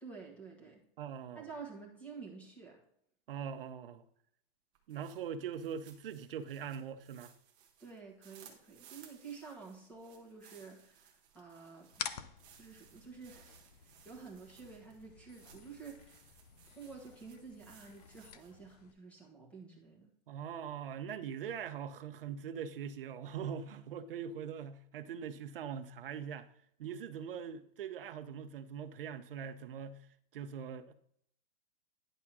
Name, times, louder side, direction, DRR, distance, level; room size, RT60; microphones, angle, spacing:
voice 1, 0.0-0.8 1.3-2.8 7.8-11.9 12.6-16.2 16.8-20.1, right 5 dB, 5° left, 1.2 m, -50 dB
voice 2, 1.0-1.5 3.3-4.0 4.9-7.3 20.3-26.5 26.8-30.0 30.3-30.9, right 7 dB, 65° right, 0.9 m, -42 dB
sound 1, 4.8-18.7, right 8 dB, 15° right, 0.7 m, -62 dB
sound 2, 11.9-18.9, left 8 dB, 40° left, 0.6 m, -49 dB
10.5 x 3.6 x 6.1 m
supercardioid pair, 175°, 30 cm